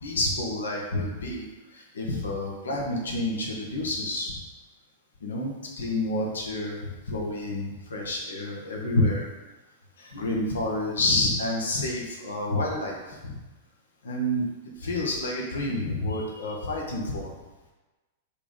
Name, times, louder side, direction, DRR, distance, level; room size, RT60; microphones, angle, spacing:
voice 1, 0.0-1.5 1.7-4.3 5.2-6.8 7.1-9.3 10.0-13.4 14.0-14.5 14.8-17.3, left 1 dB, 70° left, -2 dB, 1.3 m, -29 dB
5.0 x 3.5 x 5.3 m, 1.1 s
figure-of-eight pair, 100°, 0 cm